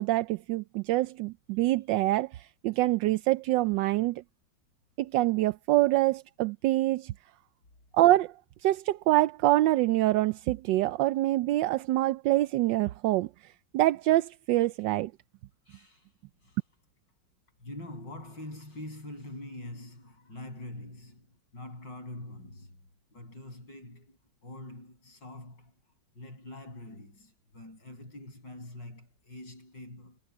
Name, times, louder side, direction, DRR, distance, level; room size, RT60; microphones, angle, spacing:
voice 1, 0.0-4.2 5.0-7.1 7.9-8.3 8.6-13.3 13.7-15.1, right 16 dB, 75° right, 1.2 m, -25 dB
voice 2, 15.7-16.1 16.4-16.6 17.6-22.8 23.1-25.8 26.2-30.2, left 1 dB, 65° left, 8.5 m, -44 dB
omnidirectional pair, 2.1 m